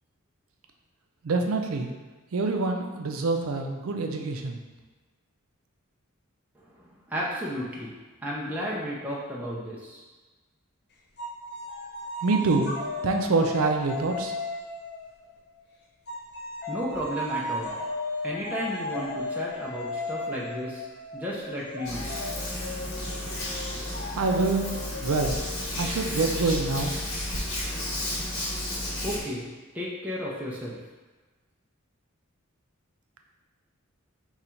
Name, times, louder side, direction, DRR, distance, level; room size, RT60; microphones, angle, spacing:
voice 1, 1.2-1.9 2.3-4.6 12.2-12.7 13.0-14.3 24.1-24.6 25.0-25.4 25.8-27.0, right 3 dB, 75° right, 4 dB, 0.5 m, -26 dB
voice 2, 6.6-7.9 8.2-10.0 16.7-17.8 18.2-20.9 21.1-22.1 29.0-29.5 29.7-30.8, equal, 5° right, -6 dB, 0.5 m, -33 dB
sound 1, 11.2-15.5 16.1-27.4, left 2 dB, 50° left, 0.6 m, -36 dB
Hands, 21.8-29.2, left 1 dB, 65° left, 1.0 m, -32 dB
3.9 x 2.4 x 4.4 m, 1.3 s
head